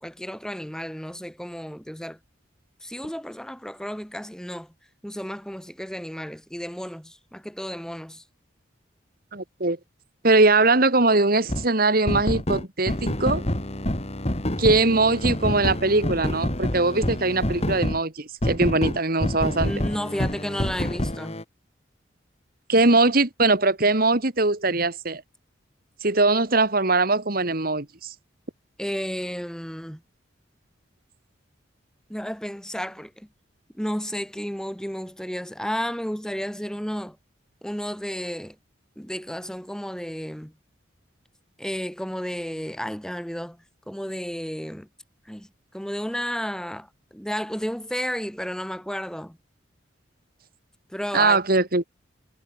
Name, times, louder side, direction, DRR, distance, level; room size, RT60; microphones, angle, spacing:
voice 1, 0.0-2.2 2.8-4.7 5.0-8.2 19.6-21.4 28.8-30.0 32.1-33.3 33.7-37.2 37.6-38.6 39.0-40.5 41.6-44.9 45.2-49.4 50.9-51.4, equal, 5° left, 3.0 m, -32 dB
voice 2, 9.3-9.8 10.2-13.4 14.6-19.7 22.7-25.2 26.0-28.1 51.1-51.8, right 3 dB, 50° right, 2.1 m, -21 dB
sound 1, 11.5-11.7 12.1-18.0 18.4-21.4, left 1 dB, 35° left, 2.7 m, -27 dB
head